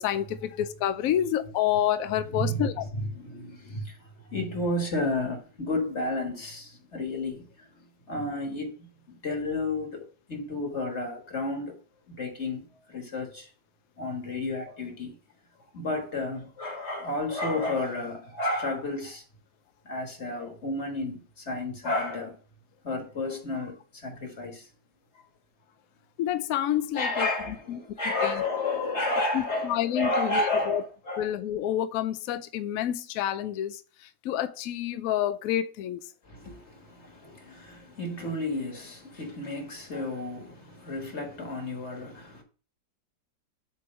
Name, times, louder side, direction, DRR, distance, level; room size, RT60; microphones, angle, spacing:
voice 1, 0.0-2.9 26.2-27.3 27.7-27.8 28.2-28.3 29.3-30.8 31.2-33.8 34.2-36.0 38.2-38.3, left 11 dB, 70° left, 0.9 m, -28 dB
voice 2, 2.3-11.8 12.1-13.5 14.0-15.1 15.7-19.2 19.8-22.4 22.8-24.7 26.9-31.3 36.2-42.4, left 2 dB, 40° left, 1.7 m, -32 dB
7.7 x 3.2 x 6.1 m
omnidirectional pair, 1.8 m